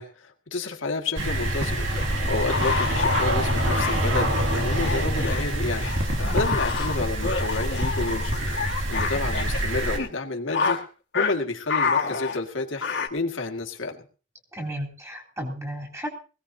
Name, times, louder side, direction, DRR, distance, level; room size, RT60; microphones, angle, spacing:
voice 1, 0.0-1.8 2.3-8.4 8.9-10.8 11.1-14.0, left 3 dB, 80° left, 3 dB, 2.0 m, -30 dB
sound 1, 1.2-10.0, right 1 dB, 80° right, 2.3 m, -26 dB
sound 2, 1.5-5.4 5.8-9.6 9.9-10.1 10.5-10.8 11.1-11.3 11.7-13.1, left 5 dB, 60° left, 1.8 m, -28 dB
voice 2, 14.5-16.1, equal, 15° right, -1 dB, 3.6 m, -34 dB
20.5 x 17.0 x 2.7 m, 0.36 s
head